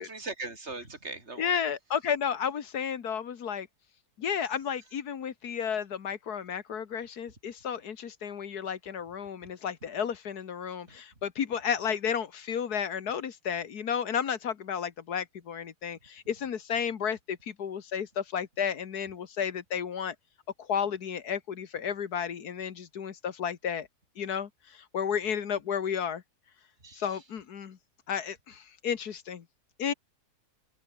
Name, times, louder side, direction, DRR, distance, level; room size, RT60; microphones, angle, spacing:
voice 1, 0.0-1.6 10.9-11.0 26.8-27.2, right 3 dB, 40° right, 5.1 m, -40 dB
voice 2, 1.4-3.7 4.2-20.2 20.6-23.9 24.2-26.2 26.9-27.8 28.1-29.5 29.8-29.9, left 7 dB, 70° left, 1.9 m, -32 dB
omnidirectional pair, 1.7 m